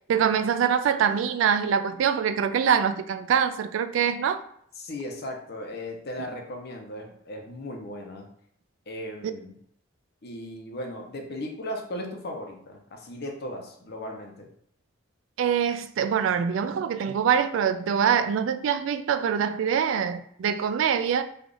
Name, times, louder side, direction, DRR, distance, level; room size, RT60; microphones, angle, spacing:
voice 1, 0.1-4.4 15.4-21.2, right 7 dB, 75° right, 0.3 m, -24 dB
voice 2, 4.8-8.3 8.9-9.6 10.2-14.5, left 1 dB, 55° left, 0.7 m, -37 dB
3.3 x 2.4 x 3.8 m
head